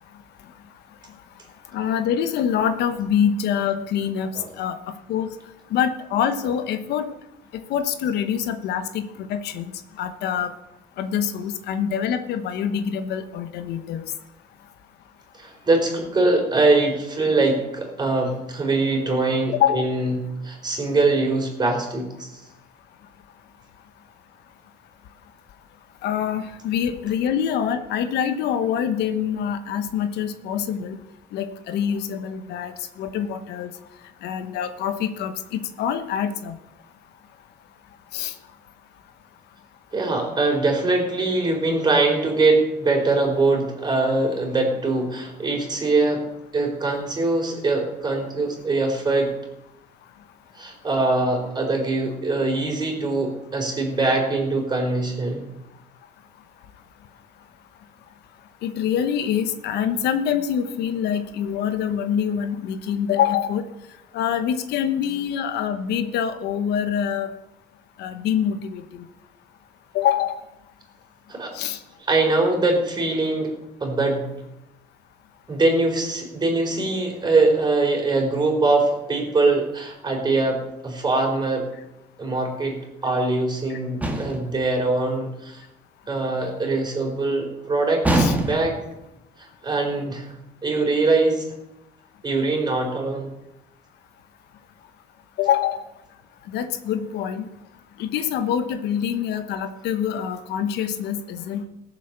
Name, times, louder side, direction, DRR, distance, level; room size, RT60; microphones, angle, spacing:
voice 1, 1.7-4.8 5.1-5.3 5.7-7.1 7.5-9.7 10.0-10.5 11.0-14.0 19.5-19.8 26.0-31.0 31.3-33.7 34.2-36.6 38.1-38.3 58.6-63.6 64.1-67.3 68.0-69.0 69.9-70.4 71.5-71.8 88.1-88.4 95.4-95.9 96.5-97.5 98.0-101.7, left 8 dB, 80° left, 9 dB, 1.2 m, -25 dB
voice 2, 15.4-22.3 39.9-46.2 46.5-49.3 50.5-55.5 71.3-71.6 72.1-73.5 73.8-74.3 75.5-81.7 82.2-85.6 86.1-88.1 88.4-88.8 89.4-90.3 90.6-91.4 92.2-93.3, right 3 dB, 25° right, 2 dB, 4.2 m, -22 dB
sound 1, 84.0-84.6 88.0-88.9, right 1 dB, 10° right, 2.1 m, -22 dB
17.0 x 7.5 x 6.7 m, 0.89 s
cardioid pair, 110°, 17 cm